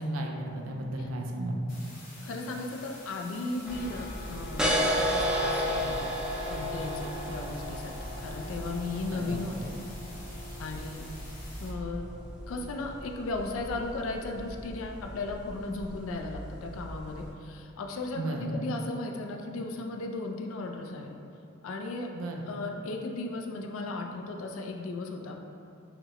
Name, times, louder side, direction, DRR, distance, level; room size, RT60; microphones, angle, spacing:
voice 1, 0.0-1.5 9.0-9.4 18.1-18.6 22.1-22.5, right 1 dB, 85° right, 1 dB, 0.5 m, -34 dB
sound 1, 1.7-11.7, left 2 dB, 45° left, 1.1 m, -49 dB
voice 2, 2.2-6.1 6.5-9.8 10.6-11.1 11.6-12.1 12.5-21.1 21.6-22.1 22.5-25.4, left 2 dB, 70° left, 2 dB, 0.4 m, -36 dB
sound 2, 3.6-17.3, equal, 5° right, 0.4 m, -34 dB
5.8 x 2.1 x 2.9 m, 2.6 s
head